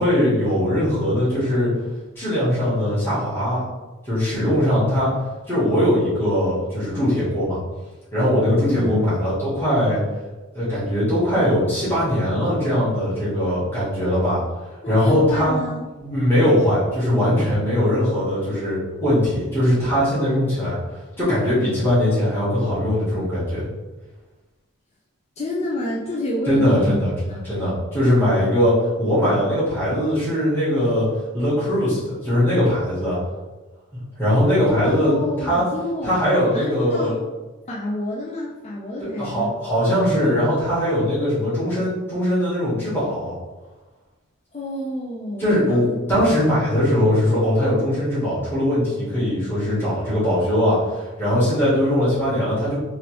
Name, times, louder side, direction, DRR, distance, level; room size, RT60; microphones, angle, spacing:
voice 1, 0.0-1.7 2.2-3.7 4.0-5.1 5.5-7.6 8.1-10.0 10.5-14.4 14.9-15.5 16.0-20.8 21.2-23.7 26.5-27.1 27.4-31.1 31.3-33.2 34.2-35.2 35.4-35.6 36.0-37.2 39.2-43.4 45.4-52.8, equal, 10° left, -12 dB, 1.2 m, -20 dB
voice 2, 8.7-9.1 14.8-15.9 25.4-27.0 27.3-27.4 34.6-36.2 36.5-37.2 37.7-39.5 44.5-45.8, left 1 dB, 30° left, -5 dB, 0.4 m, -28 dB
3.1 x 2.5 x 3.0 m, 1.2 s
head